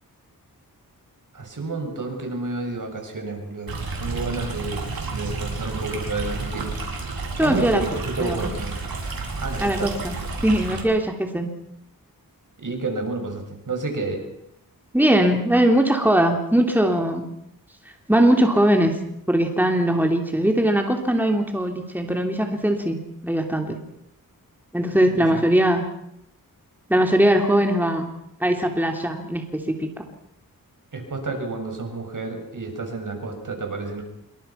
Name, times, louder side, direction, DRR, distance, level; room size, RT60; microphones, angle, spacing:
voice 1, 1.3-3.7 4.0-6.7 7.4-8.8 9.4-9.9 12.6-14.3 25.1-25.4 30.9-34.0, right 3 dB, 60° right, 4 dB, 6.8 m, -30 dB
Stream, 3.7-10.8, right 3 dB, 80° right, 5.4 m, -31 dB
voice 2, 7.4-7.8 8.2-8.4 9.6-10.1 10.4-11.5 14.9-17.2 18.1-19.0 19.3-23.8 24.7-25.8 26.9-28.1 28.4-29.9, right 1 dB, 5° right, 3 dB, 3.3 m, -20 dB
27.0 x 24.0 x 5.9 m, 0.79 s
wide cardioid pair, 75°, 35 cm